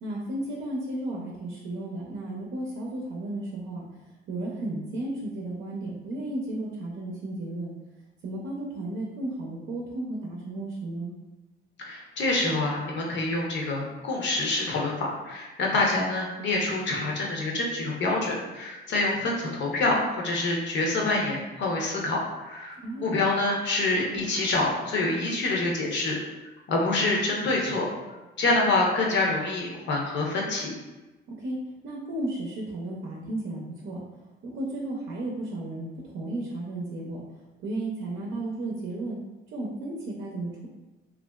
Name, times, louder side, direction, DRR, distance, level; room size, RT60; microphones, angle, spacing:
voice 1, 0.0-7.7 8.2-11.1 22.8-23.2 31.3-34.0 34.4-37.2 37.6-39.2 39.5-40.7, right 2 dB, 75° right, -3 dB, 0.6 m, -34 dB
voice 2, 11.8-20.0 20.2-26.2 26.7-27.9 28.4-30.8, left 2 dB, 65° left, -1 dB, 0.7 m, -26 dB
3.0 x 2.4 x 2.2 m, 1.1 s
cardioid pair, 90°, 20 cm